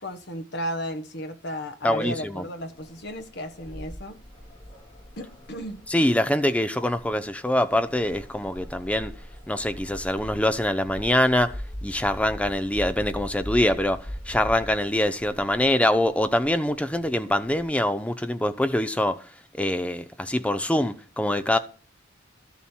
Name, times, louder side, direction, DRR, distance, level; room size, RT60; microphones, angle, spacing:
voice 1, 0.0-4.2 5.2-5.8, equal, 55° left, 1.4 m, -34 dB
voice 2, 1.8-2.4 5.9-9.1 9.5-11.6 11.8-19.2 19.6-21.6, left 1 dB, 5° left, 0.6 m, -24 dB
sound 1, 2.6-17.6, equal, 25° left, 2.1 m, -41 dB
12.5 x 7.1 x 4.5 m
head